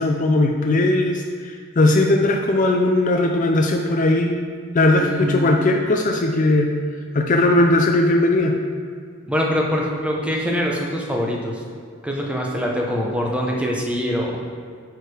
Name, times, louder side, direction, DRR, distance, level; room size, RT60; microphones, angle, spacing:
voice 1, 0.0-4.4 4.7-6.7 7.1-8.6, left 2 dB, 35° left, 2 dB, 0.5 m, -18 dB
voice 2, 5.0-5.7 9.3-11.6 12.0-14.4, equal, 5° right, -2 dB, 0.9 m, -24 dB
9.0 x 4.8 x 5.0 m, 2.1 s
head